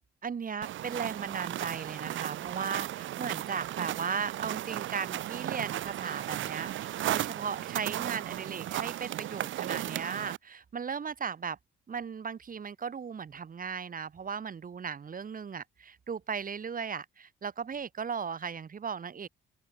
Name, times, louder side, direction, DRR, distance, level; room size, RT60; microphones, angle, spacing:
voice 1, 0.2-11.6 11.9-19.3, right 6 dB, 45° right, 5.0 m, -37 dB
sound 1, 0.6-10.4, right 13 dB, 75° right, 1.5 m, -35 dB
open air
cardioid pair, 90°, 20 cm